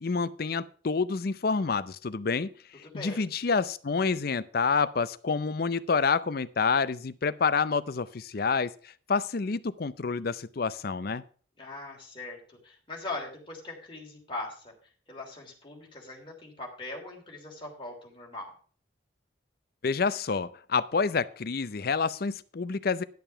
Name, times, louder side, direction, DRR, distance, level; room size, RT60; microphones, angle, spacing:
voice 1, 0.0-2.5 2.9-8.7 9.1-11.2 19.8-23.0, left 5 dB, 55° left, 0.5 m, -28 dB
voice 2, 2.8-3.2 11.6-14.7 15.1-18.5, left 2 dB, 25° left, 3.1 m, -40 dB
11.0 x 6.9 x 5.6 m
head